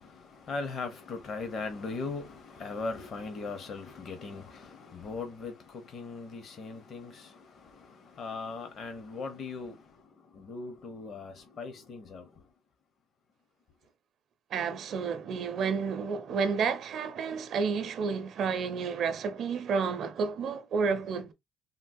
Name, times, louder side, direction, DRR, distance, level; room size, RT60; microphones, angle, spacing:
voice 1, 0.0-12.4, left 4 dB, 45° left, 0.8 m, -39 dB
voice 2, 14.5-21.3, right 5 dB, 55° right, 0.6 m, -30 dB
3.7 x 2.1 x 2.6 m
cardioid pair, 135°, 0 cm